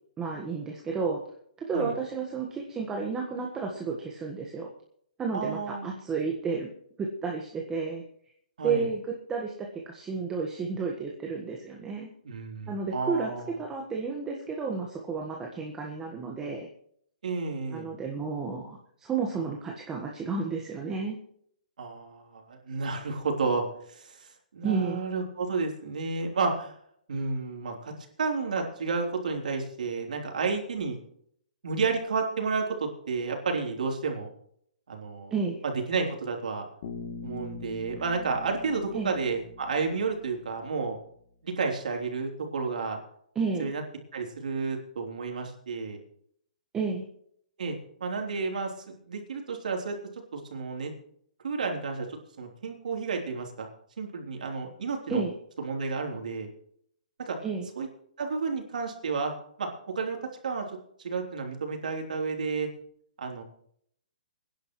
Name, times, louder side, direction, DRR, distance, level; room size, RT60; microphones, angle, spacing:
voice 1, 0.2-1.2 1.7-4.7 5.2-6.7 7.0-8.0 8.6-12.1 12.7-13.3 13.6-16.7 17.7-21.2 24.6-25.0 35.3-35.6 38.9-39.1 43.3-43.7 46.7-47.0 55.1-55.3 57.4-57.7, right 4 dB, 15° right, 0 dB, 1.5 m, -31 dB
voice 2, 5.3-6.0 8.6-8.9 12.2-13.5 17.2-17.9 21.8-24.3 24.5-26.7 27.1-27.9 28.2-31.0 31.6-34.3 34.9-35.3 35.6-36.7 37.2-41.0 41.4-43.0 43.6-43.8 44.1-46.0 47.6-47.8 48.0-50.0 50.3-50.9 51.4-53.7 54.0-55.2 55.6-56.5 57.2-57.4 57.8-57.9 58.2-59.7 60.0-60.2 60.4-62.7 63.2-63.4, right 4 dB, 75° right, 2 dB, 3.5 m, -31 dB
Bass guitar, 36.8-40.7, left 4 dB, 50° left, 2.9 m, -43 dB
23.0 x 10.5 x 3.2 m, 0.67 s
hypercardioid pair, 155°, 4 cm